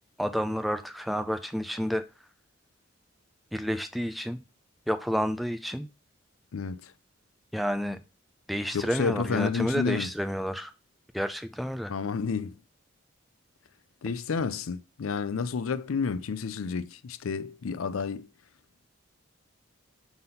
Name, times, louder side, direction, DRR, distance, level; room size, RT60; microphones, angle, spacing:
voice 1, 0.2-2.0 3.5-4.4 4.9-5.9 7.5-8.0 8.5-10.7 11.1-11.9, equal, ahead, 0.4 m, -30 dB
voice 2, 6.5-6.9 8.7-10.1 11.9-12.6 14.0-18.3, left 5 dB, 85° left, 0.5 m, -30 dB
5.9 x 4.0 x 5.4 m
head